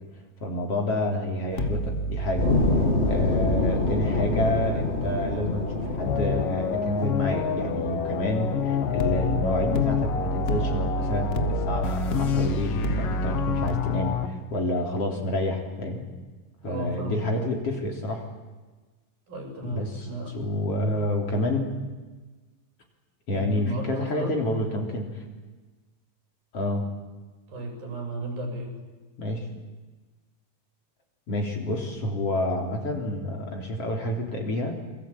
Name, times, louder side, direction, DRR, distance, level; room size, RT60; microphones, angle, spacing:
voice 1, 0.4-2.5 3.1-16.0 16.6-18.3 19.6-20.1 20.3-21.6 23.3-25.2 26.5-26.9 29.2-29.5 31.3-34.8, left 1 dB, 40° left, 2 dB, 4.3 m, -29 dB
sound 1, 1.5-6.6 9.0-13.7, right 2 dB, 90° left, 0.5 m, -31 dB
sound 2, 2.4-13.1, left 2 dB, 20° left, 2.2 m, -28 dB
sound 3, 6.0-14.3, left 8 dB, 70° left, 3.2 m, -28 dB
voice 2, 16.6-17.2 19.3-20.4 23.3-24.4 27.5-28.8, right 1 dB, 80° right, 3 dB, 8.2 m, -34 dB
28.0 x 22.0 x 8.7 m, 1.3 s
omnidirectional pair, 4.1 m